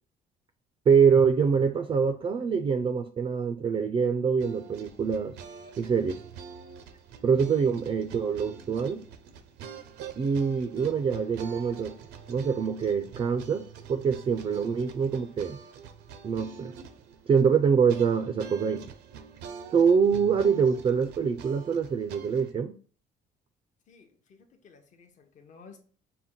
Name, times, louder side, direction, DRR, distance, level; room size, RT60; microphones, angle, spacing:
voice 1, 0.9-5.4 5.8-6.2 7.2-9.0 10.2-12.0 12.3-15.6 16.2-16.7 17.3-18.8 19.7-22.8, right 6 dB, 30° right, 0.3 m, -25 dB
sound 1, 4.4-22.5, right 6 dB, 85° right, 0.5 m, -46 dB
voice 2, 23.9-25.8, left 5 dB, 45° left, 0.7 m, -54 dB
5.6 x 2.1 x 3.7 m
cardioid pair, 110°, 17 cm